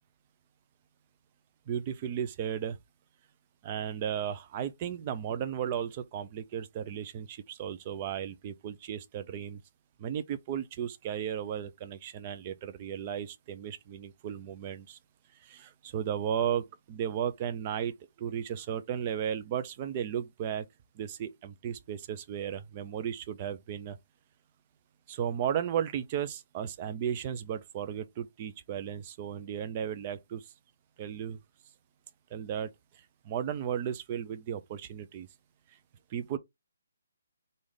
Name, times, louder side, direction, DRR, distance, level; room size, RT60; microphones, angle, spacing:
voice 1, 1.7-2.8 3.6-9.6 10.0-15.0 15.4-20.7 21.0-24.0 25.1-30.5 31.0-31.4 32.3-32.7 33.2-35.3 36.1-36.4, right 9 dB, 25° right, 0.4 m, -35 dB
3.2 x 2.6 x 3.7 m
hypercardioid pair, 170°, 0 cm